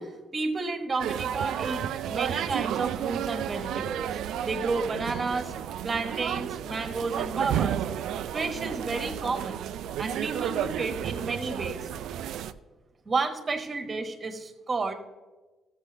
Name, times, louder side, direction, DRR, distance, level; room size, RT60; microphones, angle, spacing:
voice 1, 0.0-4.1 4.4-5.5 5.8-7.8 8.3-9.6 10.0-11.9 13.1-14.9, right 3 dB, 35° right, 6 dB, 1.3 m, -31 dB
sound 1, 1.0-12.5, right 10 dB, 80° right, 0.4 m, -32 dB
14.0 x 7.4 x 3.3 m, 1.2 s
cardioid pair, 90°, 0 cm